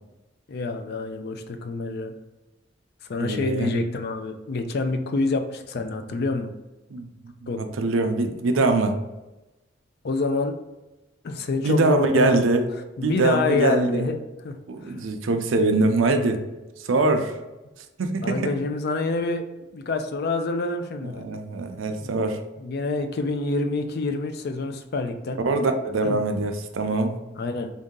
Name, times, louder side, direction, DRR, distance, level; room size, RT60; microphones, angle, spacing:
voice 1, 0.5-2.1 3.1-6.5 7.5-7.6 10.0-10.5 11.2-12.5 13.0-14.2 14.4-14.6 18.2-19.4 19.7-21.3 22.0-22.1 22.6-25.4 26.0-26.2 27.4-27.7, left 3 dB, 55° left, 6 dB, 0.4 m, -27 dB
voice 2, 3.1-3.8 6.9-9.0 11.6-12.7 13.0-14.1 14.7-16.4 16.8-17.4 18.0-18.5 21.2-22.4 25.4-27.2, right 2 dB, 85° right, 6 dB, 0.5 m, -23 dB
3.6 x 2.7 x 3.7 m, 1.0 s
head